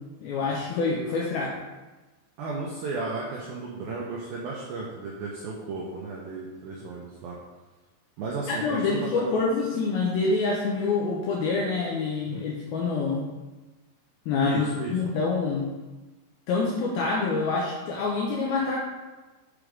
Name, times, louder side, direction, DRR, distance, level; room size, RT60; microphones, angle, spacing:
voice 1, 0.2-1.6 8.5-13.3 14.3-14.6 14.9-15.7 16.5-18.8, left 4 dB, 80° left, -3 dB, 2.2 m, -26 dB
voice 2, 2.4-7.4 8.2-9.2 12.3-12.4 14.4-15.0, right 3 dB, 85° right, -4 dB, 2.0 m, -34 dB
7.4 x 4.9 x 5.1 m, 1.2 s
omnidirectional pair, 5.5 m